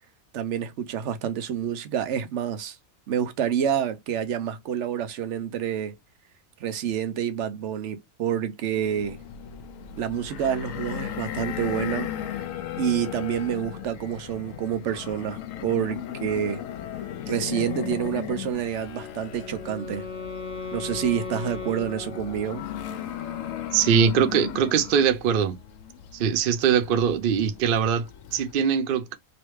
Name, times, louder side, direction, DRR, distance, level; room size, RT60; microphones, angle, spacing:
voice 1, 0.3-2.8 3.1-5.9 6.6-9.2 10.0-12.1 12.8-16.6 17.3-20.1 20.7-22.7, right 9 dB, 65° right, 0.8 m, -28 dB
sound 1, 8.7-28.5, left 10 dB, 70° left, 0.9 m, -36 dB
Wind instrument woodwind instrument, 18.9-22.8, left 4 dB, 5° right, 1.0 m, -37 dB
voice 2, 23.7-25.6 26.1-29.2, right 7 dB, 80° right, 0.4 m, -22 dB
3.2 x 2.9 x 3.0 m
omnidirectional pair, 1.5 m